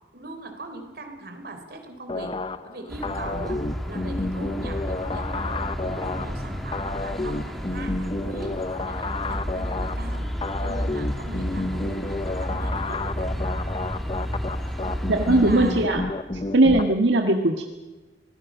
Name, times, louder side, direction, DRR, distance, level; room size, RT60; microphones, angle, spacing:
voice 1, 0.1-2.4 2.6-3.6 3.9-8.5 8.8-10.3 10.6-13.6 15.2-15.8, right 2 dB, 60° right, 6 dB, 3.6 m, -39 dB
sound 1, 2.1-16.8, left 2 dB, 30° left, 0.7 m, -31 dB
sound 2, 2.9-15.9, equal, ahead, 2.4 m, -31 dB
voice 2, 15.1-16.0 16.5-17.6, right 2 dB, 85° right, 4 dB, 1.7 m, -19 dB
26.0 x 19.0 x 6.3 m, 1.2 s
head